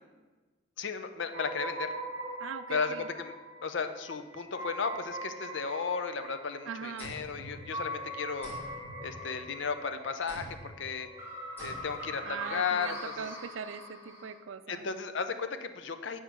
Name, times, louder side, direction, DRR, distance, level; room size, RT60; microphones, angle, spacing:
voice 1, 0.8-1.9 2.7-3.3 3.6-8.5 9.0-11.1 11.6-13.3 14.7-16.2, left 5 dB, 65° left, 9 dB, 0.6 m, -34 dB
sound 1, 1.3-14.4, right 1 dB, 15° right, 2.0 m, -42 dB
voice 2, 2.4-3.1 6.7-7.1 12.2-14.9, right 6 dB, 85° right, 13 dB, 0.4 m, -41 dB
sound 2, 7.0-8.0 8.4-9.7 10.3-10.8 11.6-12.2, equal, 10° left, 2.8 m, -47 dB
8.2 x 4.7 x 6.0 m, 1.3 s
head